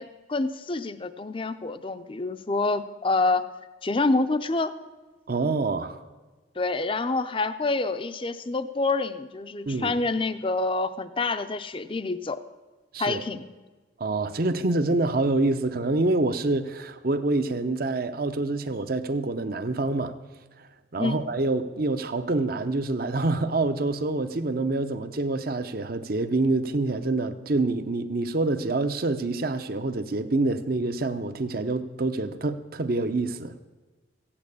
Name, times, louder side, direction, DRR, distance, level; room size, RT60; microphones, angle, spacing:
voice 1, 0.0-3.4 3.8-4.7 6.6-12.4 13.0-13.5 21.0-21.2, left 3 dB, 25° left, 0.5 m, -27 dB
voice 2, 5.3-6.0 9.7-10.0 12.9-13.2 14.0-20.2 20.9-33.5, right 2 dB, 50° right, 0.7 m, -26 dB
15.5 x 8.7 x 8.5 m
head